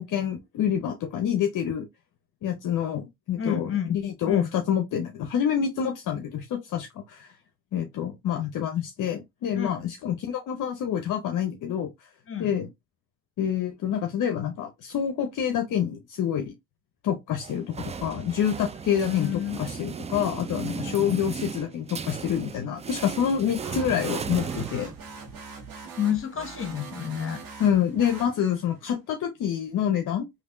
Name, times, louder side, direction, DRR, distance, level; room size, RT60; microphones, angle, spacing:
voice 1, 0.0-1.9 2.4-7.3 7.7-12.1 12.4-12.7 13.4-16.5 17.0-24.9 27.6-30.3, left 9 dB, 60° left, 0.7 m, -27 dB
voice 2, 3.4-4.0 4.2-4.5 9.5-9.8 12.3-12.6 18.9-19.6 20.8-21.1 26.0-27.4, left 9 dB, 35° left, 1.2 m, -30 dB
sound 1, 17.4-25.3, right 6 dB, 20° right, 0.3 m, -36 dB
sound 2, 23.6-28.8, right 5 dB, 70° right, 1.2 m, -43 dB
3.4 x 2.6 x 2.5 m
supercardioid pair, 60°, 36 cm